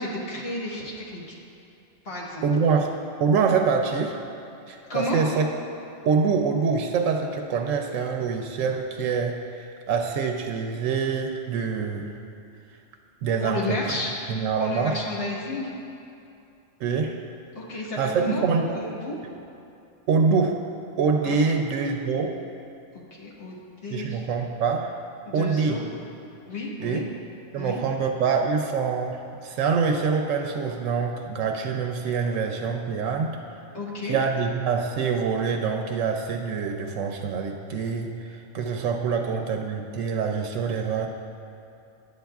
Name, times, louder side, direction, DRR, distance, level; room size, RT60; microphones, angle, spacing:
voice 1, 0.0-1.4 2.0-2.4 4.9-5.2 13.4-14.1 14.6-15.7 17.5-18.4 18.7-19.2 21.2-21.4 23.1-23.5 23.8-24.2 25.3-25.8 26.5-27.0 27.6-27.8 33.7-34.2, left 2 dB, 50° left, -4 dB, 1.5 m, -32 dB
voice 2, 2.4-2.9 3.2-4.2 4.7-5.5 6.0-12.1 13.2-14.0 14.3-15.0 16.8-17.2 18.0-18.8 20.1-20.6 21.0-22.3 23.9-24.9 25.3-25.8 26.8-27.1 27.5-33.4 34.0-41.1, right 5 dB, 85° right, 3 dB, 0.9 m, -25 dB
11.0 x 8.1 x 2.3 m, 2.7 s
omnidirectional pair, 1.3 m